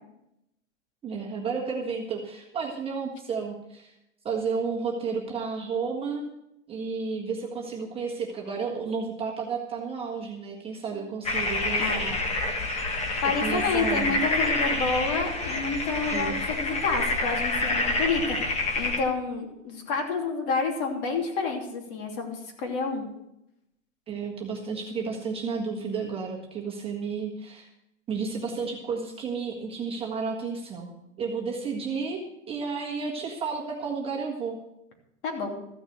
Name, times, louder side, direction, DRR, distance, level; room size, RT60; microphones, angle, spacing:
voice 1, 1.0-3.9 4.2-6.3 6.7-12.5 13.4-14.2 16.1-16.4 24.1-27.7 28.1-34.6, right 5 dB, 15° right, -2 dB, 1.6 m, -32 dB
sound 1, 11.2-19.0, left 2 dB, 15° left, 1.5 m, -27 dB
voice 2, 11.8-12.1 13.2-18.4 18.8-23.1 35.2-35.6, left 4 dB, 45° left, 2 dB, 3.0 m, -29 dB
14.5 x 6.2 x 7.9 m, 0.84 s
supercardioid pair, 155°, 37 cm